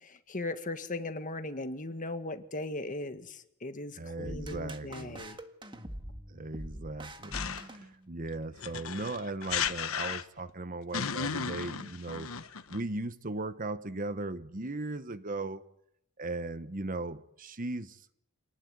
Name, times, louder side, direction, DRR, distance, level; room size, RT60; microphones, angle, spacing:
voice 1, 0.3-5.4, left 2 dB, 40° left, 8 dB, 1.8 m, -38 dB
voice 2, 4.0-5.2 6.3-12.3 12.7-15.6 16.2-18.0, right 2 dB, 40° right, 12 dB, 1.1 m, -37 dB
sound 1, 4.2-8.4, right 1 dB, 25° right, 1.7 m, -45 dB
sound 2, 7.3-7.8 8.6-10.5 10.9-12.8, left 6 dB, 70° left, 1.2 m, -34 dB
27.5 x 19.0 x 9.5 m, 0.78 s
head